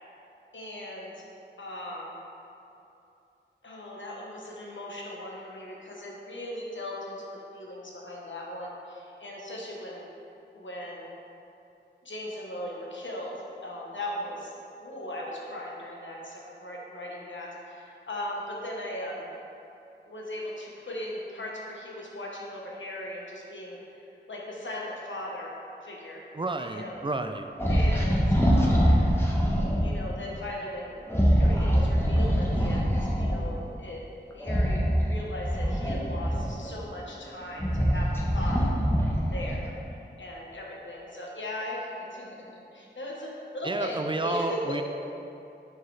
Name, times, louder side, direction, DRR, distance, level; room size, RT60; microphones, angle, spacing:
voice 1, 0.5-1.2 1.6-2.1 3.6-10.1 10.5-11.1 12.0-14.5 14.8-19.3 20.0-25.5 25.8-26.2 26.6-27.0 27.7-29.0 29.8-31.0 31.4-34.0 34.3-38.8 39.3-39.8 40.2-44.8, left 1 dB, 80° left, -3 dB, 1.1 m, -38 dB
voice 2, 26.3-27.5 43.6-44.8, right 2 dB, 25° right, 6 dB, 0.4 m, -30 dB
sound 1, 27.6-29.9 31.1-33.4 34.4-36.7 37.3-39.7, equal, 10° left, 1.0 m, -24 dB
9.0 x 4.7 x 3.3 m, 2.8 s
wide cardioid pair, 50°, 19 cm